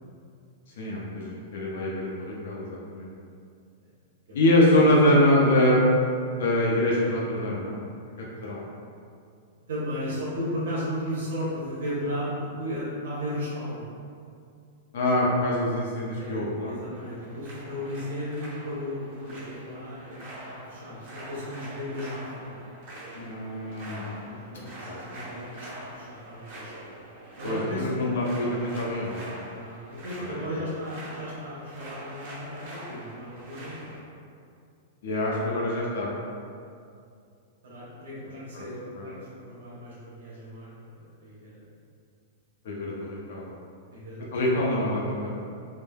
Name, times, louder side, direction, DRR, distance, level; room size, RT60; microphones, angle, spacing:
voice 1, 0.8-3.1 4.3-5.8 6.4-7.8 8.4-8.6 14.9-16.7 23.1-24.1 24.5-25.0 27.4-29.3 30.2-30.6 35.0-36.1 38.5-38.7 39.0-39.1 42.7-43.5 44.3-45.3, left 1 dB, 55° left, -4 dB, 0.4 m, -25 dB
voice 2, 9.7-13.9 16.2-16.3 16.6-22.6 24.2-26.9 27.4-28.1 29.5-34.0 37.6-41.6 43.9-44.6, equal, 70° right, -7 dB, 0.8 m, -35 dB
sound 1, 16.9-34.0, right 1 dB, 45° right, 0.9 m, -44 dB
3.2 x 2.0 x 2.2 m, 2.4 s
supercardioid pair, 180°, 0 cm